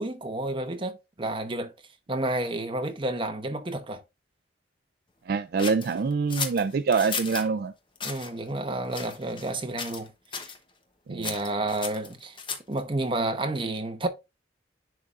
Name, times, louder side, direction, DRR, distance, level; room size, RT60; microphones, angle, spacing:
voice 1, 0.0-1.7 2.1-4.0 8.0-10.4 11.1-12.4 12.7-14.1, right 2 dB, 30° right, 0.9 m, -30 dB
voice 2, 5.3-7.7 11.1-11.3, right 5 dB, 55° right, 0.4 m, -25 dB
sound 1, 5.6-7.5 8.0-8.3 8.9-9.5 9.8-10.1 10.3-10.6 11.2-12.8, left 5 dB, 25° left, 0.9 m, -35 dB
10.5 x 3.6 x 2.5 m
head